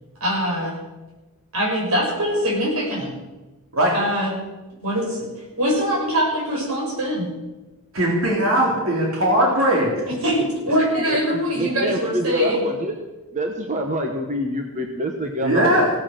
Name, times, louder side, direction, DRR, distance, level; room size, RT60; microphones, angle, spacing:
voice 1, 0.2-0.7 1.5-3.1 3.9-4.3 4.8-5.3 5.6-7.3 10.1-12.7, equal, 85° right, -2 dB, 6.5 m, -23 dB
voice 2, 7.9-9.9 15.4-15.9, right 1 dB, 65° right, -2 dB, 3.6 m, -19 dB
voice 3, 10.3-13.0 13.3-15.6, right 1 dB, 35° right, 4 dB, 1.1 m, -26 dB
17.0 x 9.8 x 6.7 m, 1.1 s
head